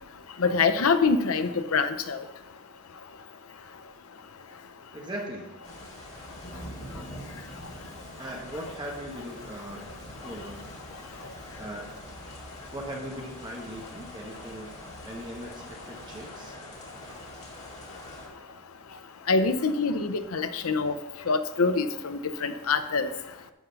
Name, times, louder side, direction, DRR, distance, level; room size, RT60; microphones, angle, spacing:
voice 1, 0.4-2.2 19.3-20.9 21.3-23.1, left 4 dB, 65° left, 10 dB, 0.6 m, -25 dB
voice 2, 4.9-5.5 7.4-7.5 8.2-9.8 10.2-10.7 11.3-12.0 12.7-14.7 15.0-16.5, equal, 20° right, -1 dB, 1.1 m, -39 dB
sound 1, 5.6-18.3, equal, 30° left, 2.2 m, -44 dB
11.5 x 3.9 x 6.9 m, 1.0 s
head